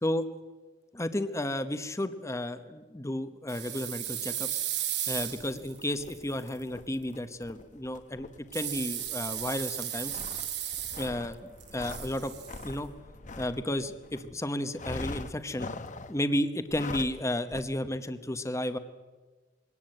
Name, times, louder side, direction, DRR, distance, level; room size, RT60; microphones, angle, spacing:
voice 1, 0.9-4.6 5.1-8.3 8.5-10.2 11.0-12.3 12.6-12.9 13.4-15.7 16.1-18.8, left 1 dB, 15° left, 11 dB, 1.0 m, -32 dB
sound 1, 3.5-6.5 8.5-11.3 11.6-12.7, right 11 dB, 70° right, 2.1 m, -35 dB
sound 2, 5.1-14.3 14.7-16.2 16.7-17.2 17.5-17.6, left 3 dB, 45° left, 1.0 m, -43 dB
22.5 x 18.5 x 7.9 m, 1.3 s
head